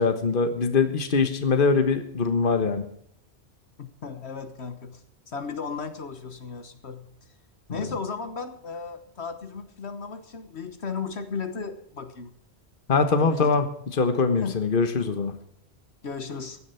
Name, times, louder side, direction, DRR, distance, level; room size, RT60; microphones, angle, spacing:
voice 1, 0.0-2.9 7.7-7.8 12.9-15.3, left 4 dB, 50° left, 9 dB, 1.5 m, -23 dB
voice 2, 3.8-7.1 7.7-12.3 13.1-13.5 14.4-14.6 15.0-15.1 16.0-16.6, left 5 dB, 70° left, 9 dB, 1.5 m, -35 dB
16.0 x 11.5 x 5.7 m, 0.68 s
omnidirectional pair, 1.1 m